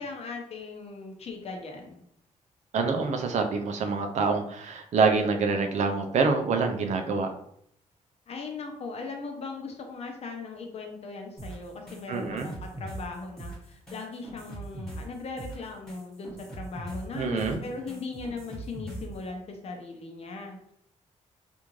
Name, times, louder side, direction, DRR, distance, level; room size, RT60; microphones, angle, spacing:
voice 1, 0.0-2.0 8.3-20.7, left 3 dB, 50° left, 2 dB, 0.7 m, -39 dB
voice 2, 2.7-7.3 12.1-12.5 17.1-17.6, right 4 dB, 65° right, 5 dB, 0.5 m, -26 dB
sound 1, 11.4-19.2, right 2 dB, 5° left, 1.3 m, -41 dB
3.6 x 2.5 x 3.1 m, 0.73 s
cardioid pair, 115°, 13 cm